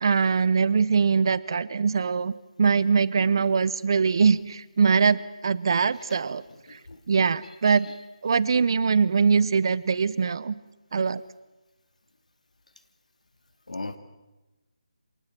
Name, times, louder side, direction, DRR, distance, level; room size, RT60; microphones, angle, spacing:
voice 1, 0.0-2.3 2.6-6.4 7.1-7.9 8.2-10.5 10.9-11.2, right 5 dB, 40° right, 18 dB, 0.8 m, -22 dB
voice 2, 6.7-7.0 7.6-7.8 13.7-14.0, left 2 dB, 85° left, 9 dB, 2.8 m, -37 dB
26.0 x 19.5 x 7.5 m, 1.1 s
figure-of-eight pair, 170°, 4 cm